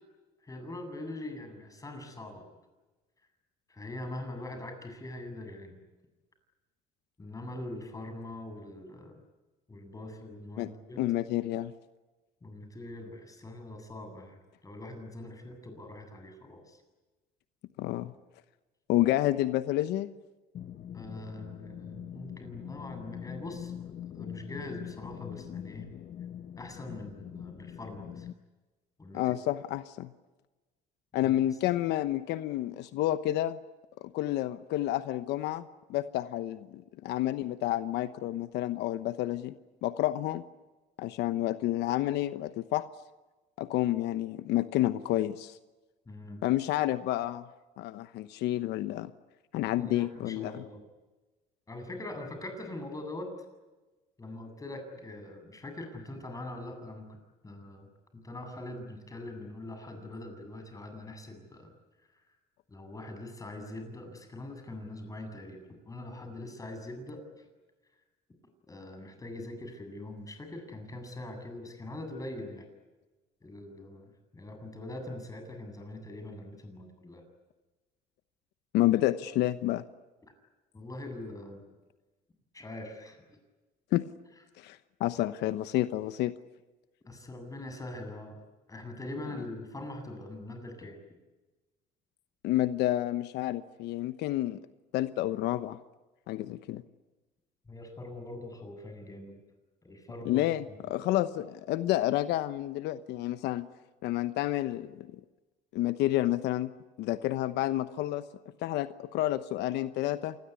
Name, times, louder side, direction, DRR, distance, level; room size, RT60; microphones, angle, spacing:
voice 1, 0.4-2.4 3.7-5.8 7.2-9.2 9.7-11.0 12.4-16.8 20.9-25.9 26.6-28.3 29.0-29.4 31.7-31.8 46.1-46.4 49.8-50.8 51.7-53.3 54.2-57.2 57.4-57.9 58.1-61.7 62.0-62.2 62.7-67.5 68.7-72.7 73.4-77.2 80.7-81.6 82.5-83.4 87.0-88.4 88.7-91.0 97.7-99.4 99.8-100.5, left 1 dB, 20° left, 6 dB, 7.9 m, -43 dB
voice 2, 11.0-11.7 17.8-18.1 18.9-20.1 29.1-30.1 31.1-33.6 34.0-39.5 39.8-40.4 41.0-42.8 43.6-45.6 46.4-47.4 47.8-49.1 49.5-50.6 78.7-79.8 83.9-84.0 84.6-86.3 92.4-94.6 94.9-95.8 96.3-96.8 100.2-103.7 104.0-105.1 105.7-106.7 107.0-108.2 108.6-110.4, left 14 dB, 85° left, 12 dB, 1.0 m, -29 dB
sound 1, 20.5-28.3, left 10 dB, 50° left, 1.0 m, -43 dB
27.5 x 20.5 x 9.8 m, 1.2 s
cardioid pair, 110°, 17 cm